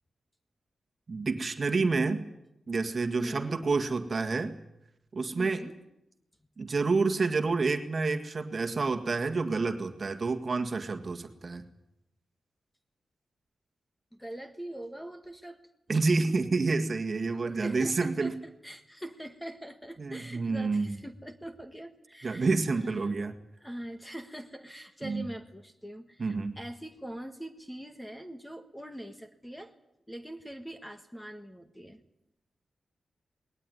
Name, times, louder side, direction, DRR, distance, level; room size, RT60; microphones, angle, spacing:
voice 1, 1.1-2.3 2.7-4.5 5.1-5.6 6.6-11.6 15.9-18.3 20.0-20.9 22.2-23.3 25.0-25.3 26.2-26.6, right 4 dB, 40° right, 6 dB, 1.8 m, -28 dB
voice 2, 3.2-3.6 5.4-5.7 14.1-15.6 17.4-23.1 23.6-29.7 30.1-32.0, right 1 dB, 5° left, 7 dB, 1.6 m, -43 dB
19.5 x 18.5 x 9.9 m, 0.83 s
wide cardioid pair, 155°, 0 cm